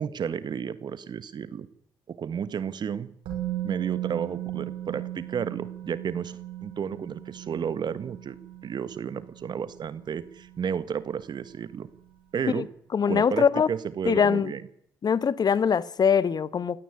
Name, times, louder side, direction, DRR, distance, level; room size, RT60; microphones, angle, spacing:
voice 1, 0.0-1.7 2.1-3.1 3.6-8.4 8.6-11.9 12.3-12.7 13.1-14.6, right 7 dB, 50° right, 1.5 m, -32 dB
Musical instrument, 3.3-11.2 11.4-11.6, right 13 dB, 70° right, 5.8 m, -37 dB
voice 2, 12.9-13.7 14.1-14.5 15.0-16.8, left 7 dB, 45° left, 1.0 m, -22 dB
19.5 x 14.0 x 9.7 m
figure-of-eight pair, 40°, 9 cm